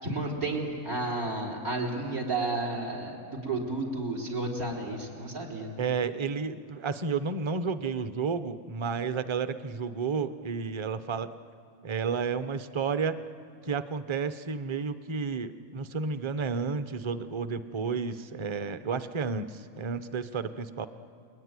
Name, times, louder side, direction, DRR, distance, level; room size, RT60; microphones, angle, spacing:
voice 1, 0.0-3.2 3.4-5.7, right 2 dB, 85° right, 1 dB, 4.3 m, -32 dB
voice 2, 5.8-11.3 11.8-13.2 13.6-20.9, right 5 dB, 30° right, 11 dB, 0.6 m, -31 dB
29.5 x 20.5 x 9.6 m, 2.3 s
omnidirectional pair, 1.5 m